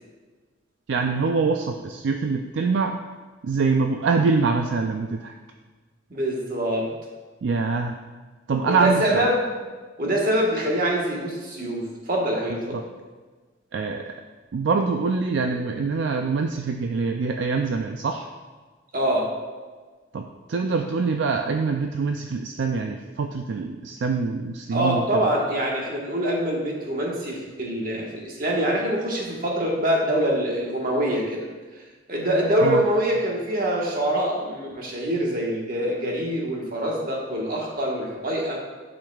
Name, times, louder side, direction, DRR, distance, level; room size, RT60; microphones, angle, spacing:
voice 1, 0.9-3.0 3.4-5.3 7.4-8.0 8.5-9.3 12.7-12.8 13.7-14.1 14.5-18.3 20.1-25.0 32.6-32.8, right 4 dB, 70° right, 4 dB, 0.4 m, -24 dB
voice 2, 6.1-6.9 8.7-9.4 10.0-12.8 18.9-19.3 24.7-31.4 32.1-38.6, right 1 dB, 45° right, -2 dB, 1.4 m, -24 dB
10.5 x 5.0 x 2.3 m, 1.4 s
head